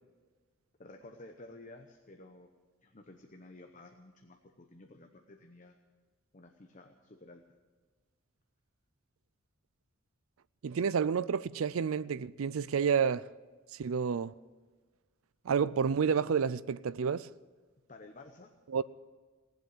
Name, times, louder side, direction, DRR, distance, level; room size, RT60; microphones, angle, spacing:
voice 1, 0.8-2.5 2.8-5.8 6.3-7.4 17.9-18.5 18.8-18.9, left 2 dB, 40° left, 0.9 m, -53 dB
voice 2, 10.6-13.3 13.8-14.3 15.5-17.3 18.7-18.8, right 6 dB, 90° right, 0.4 m, -29 dB
18.5 x 8.0 x 9.3 m
head